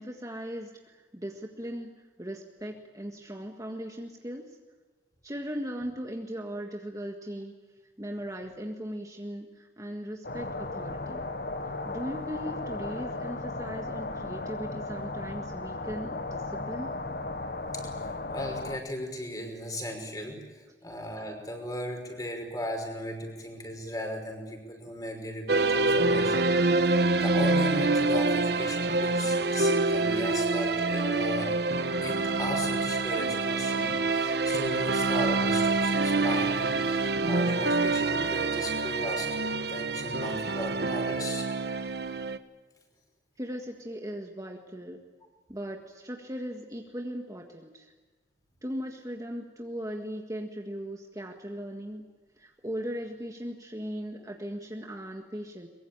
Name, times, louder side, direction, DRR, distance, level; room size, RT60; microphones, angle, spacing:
voice 1, 0.0-4.6 5.2-7.5 8.0-11.3 11.6-16.9 43.4-45.0 45.5-47.9 48.6-52.0 52.4-55.7, equal, 20° right, 2 dB, 1.7 m, -38 dB
sound 1, 10.2-18.8, left 2 dB, 60° left, 1.4 m, -36 dB
voice 2, 18.0-31.6 32.0-41.5, equal, 20° left, 3 dB, 5.6 m, -37 dB
sound 2, 25.5-42.4, right 3 dB, 65° right, 1.2 m, -26 dB
23.5 x 22.5 x 8.9 m, 1.3 s
head